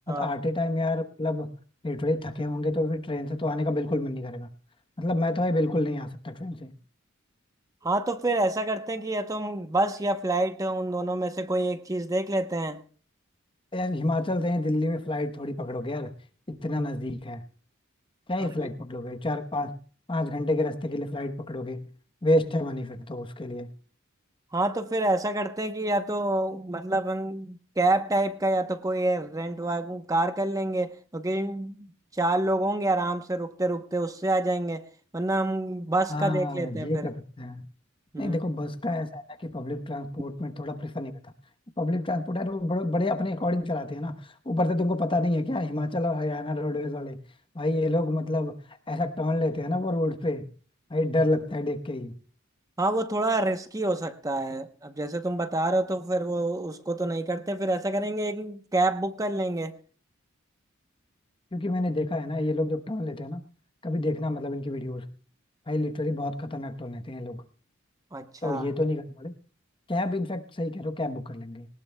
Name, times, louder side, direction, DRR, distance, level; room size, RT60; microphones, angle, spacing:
voice 1, 0.1-1.6 1.8-4.5 5.0-6.7 13.7-16.2 16.5-17.4 18.3-19.8 20.1-21.9 22.2-23.7 36.1-37.6 38.2-41.1 41.8-47.2 47.5-48.6 48.9-50.5 50.9-52.1 61.5-63.4 63.8-65.1 65.7-67.4 68.4-69.3 69.9-71.7, left 1 dB, 25° left, 0.9 m, -28 dB
voice 2, 7.8-12.8 18.4-18.5 24.5-31.9 32.1-34.8 35.1-37.1 38.1-38.4 52.8-59.8 68.1-68.7, right 2 dB, 15° right, 0.8 m, -27 dB
20.0 x 19.0 x 2.2 m
head